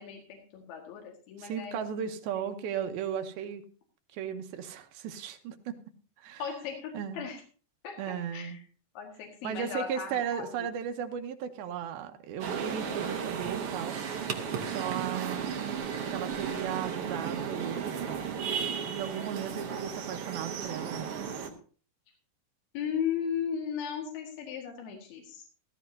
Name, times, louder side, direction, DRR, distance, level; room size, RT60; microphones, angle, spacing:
voice 1, 0.0-1.8 2.4-2.7 6.4-7.4 7.8-8.6 9.0-10.7 22.7-25.4, left 7 dB, 80° left, 0 dB, 3.8 m, -36 dB
voice 2, 1.4-3.6 4.1-5.8 6.2-6.4 6.9-7.2 8.0-8.6 9.4-14.0 14.7-15.5 16.1-18.0 18.9-21.1, right 8 dB, 90° right, 7 dB, 2.8 m, -36 dB
sound 1, 12.4-21.5, right 7 dB, 65° right, 1.5 m, -34 dB
15.0 x 15.0 x 2.7 m, 0.40 s
omnidirectional pair, 4.3 m